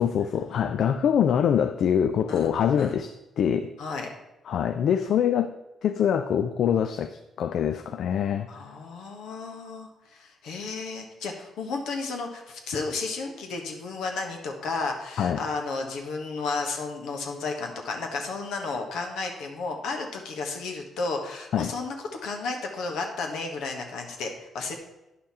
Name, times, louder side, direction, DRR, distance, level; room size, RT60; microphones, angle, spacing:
voice 1, 0.0-3.7 4.5-5.5 5.8-8.5 15.2-15.4 21.5-21.7, left 8 dB, 70° left, 10 dB, 0.4 m, -24 dB
voice 2, 2.3-2.9 3.8-4.1 8.5-21.9 22.2-24.7, left 4 dB, 85° left, 2 dB, 1.4 m, -33 dB
9.8 x 5.7 x 4.3 m, 0.98 s
cardioid pair, 90°, 0 cm